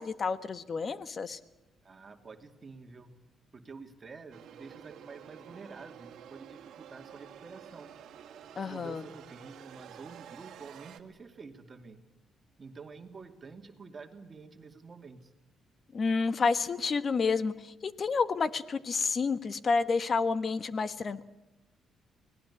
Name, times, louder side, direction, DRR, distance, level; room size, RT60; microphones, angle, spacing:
voice 1, 0.0-1.4 8.6-9.0 15.9-21.3, left 4 dB, 45° left, 14 dB, 1.3 m, -30 dB
voice 2, 1.8-3.2 3.5-8.0 8.6-12.0 12.6-15.3, right 4 dB, 35° right, 6 dB, 2.5 m, -49 dB
sound 1, 4.3-11.0, right 9 dB, 75° right, 1.8 m, -50 dB
25.0 x 18.5 x 8.4 m, 0.97 s
cardioid pair, 90°, 0 cm